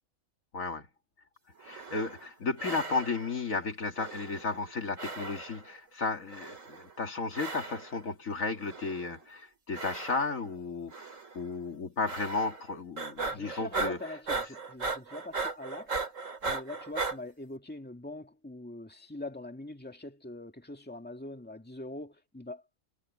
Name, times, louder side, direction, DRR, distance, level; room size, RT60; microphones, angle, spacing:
voice 1, 0.5-0.9 1.6-14.0, left 3 dB, 70° left, 2.4 m, -34 dB
sound 1, 1.6-2.3 2.6-3.4 4.0-4.7 5.0-5.7 6.3-6.9 7.3-8.0 8.6-9.2 9.7-10.5 10.9-11.4 12.1-12.7 13.0-17.2, right 3 dB, 65° right, 3.0 m, -37 dB
voice 2, 13.3-16.0 16.4-22.6, left 2 dB, 5° left, 2.0 m, -43 dB
omnidirectional pair, 1.4 m